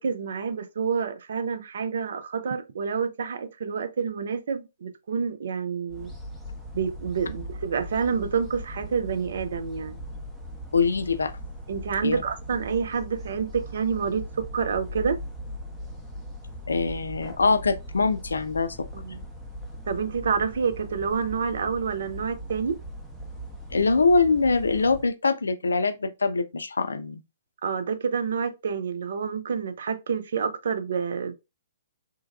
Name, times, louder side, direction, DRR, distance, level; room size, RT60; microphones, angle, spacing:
voice 1, 0.0-6.1 6.7-10.0 11.7-15.2 18.9-19.2 19.9-22.8 27.6-31.3, right 6 dB, 65° right, 0.4 m, -28 dB
sound 1, 5.9-25.1, equal, 5° left, 0.7 m, -39 dB
voice 2, 10.7-11.3 12.0-12.2 16.7-18.9 23.7-27.2, left 4 dB, 80° left, 0.3 m, -23 dB
3.2 x 2.2 x 2.3 m
figure-of-eight pair, 120°, 0 cm